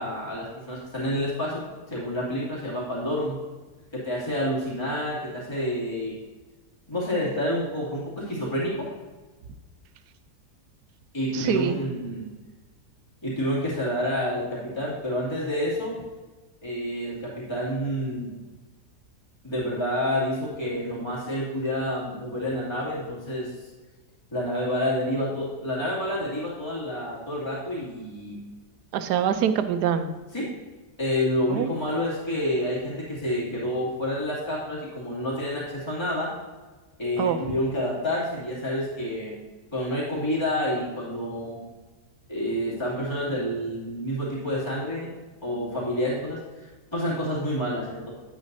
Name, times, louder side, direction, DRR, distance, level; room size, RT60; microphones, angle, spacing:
voice 1, 0.0-3.4 4.0-6.1 6.9-8.9 11.1-12.3 13.2-15.9 16.6-18.3 19.4-23.7 24.3-28.4 30.3-30.5 31.0-36.3 37.0-39.3 39.7-41.6 42.3-45.1 45.4-48.1, equal, 15° left, -7 dB, 2.4 m, -28 dB
voice 2, 11.3-11.8 28.9-30.1 31.5-31.7 37.2-37.4, right 8 dB, 80° right, 10 dB, 1.2 m, -24 dB
9.9 x 8.0 x 2.7 m, 1.2 s
omnidirectional pair, 1.7 m